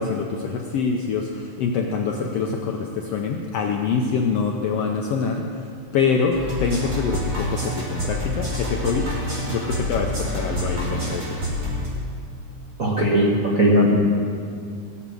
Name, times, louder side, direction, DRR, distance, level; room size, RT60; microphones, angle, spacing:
voice 1, 0.0-5.4 5.9-9.1 9.5-11.4, left 5 dB, 75° left, 2 dB, 1.4 m, -25 dB
sound 1, 6.3-11.9, equal, 30° right, 3.1 m, -27 dB
voice 2, 12.8-14.0, equal, 50° right, -5 dB, 0.9 m, -18 dB
18.0 x 7.2 x 7.5 m, 2.4 s
omnidirectional pair, 3.6 m